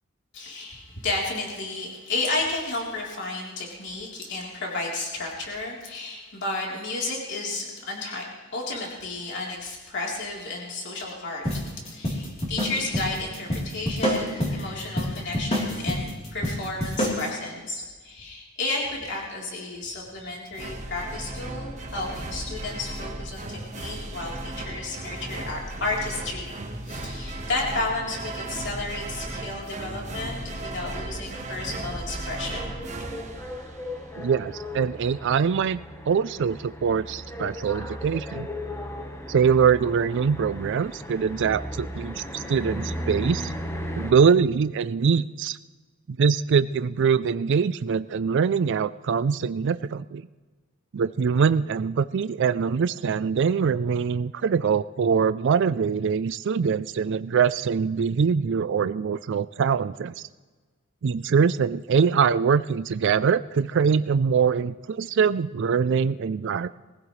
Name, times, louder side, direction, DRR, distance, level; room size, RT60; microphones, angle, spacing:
voice 1, 0.3-8.3 8.5-26.6 26.8-32.6, left 2 dB, 60° left, -2 dB, 3.5 m, -32 dB
sound 1, 11.4-17.3, equal, 30° left, 3.5 m, -28 dB
sound 2, 20.6-34.2, right 2 dB, 35° right, 1.3 m, -36 dB
sound 3, 30.9-44.1, equal, 15° left, 1.2 m, -36 dB
voice 2, 34.2-35.8 36.1-38.5 39.3-43.5 43.9-45.6 46.2-50.3 50.9-60.1 61.0-66.7, right 6 dB, 60° right, 14 dB, 0.4 m, -23 dB
22.0 x 16.0 x 3.2 m, 1.4 s
head